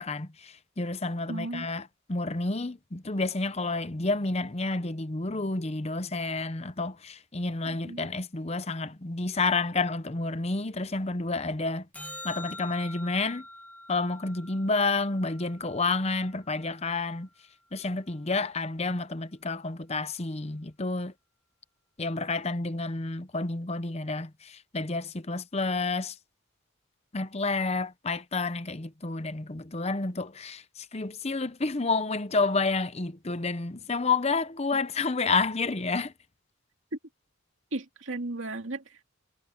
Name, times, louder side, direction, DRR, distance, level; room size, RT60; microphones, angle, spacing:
voice 1, 0.0-11.9 12.2-13.4 13.9-17.3 17.7-21.1 22.0-26.1 27.1-36.1, left 3 dB, 30° left, 0.8 m, -30 dB
voice 2, 1.3-1.7 7.7-8.1 34.7-34.8 37.7-39.0, right 2 dB, 65° right, 2.5 m, -36 dB
sound 1, 11.9-16.4 23.0-23.1, left 1 dB, 5° left, 1.7 m, -45 dB
head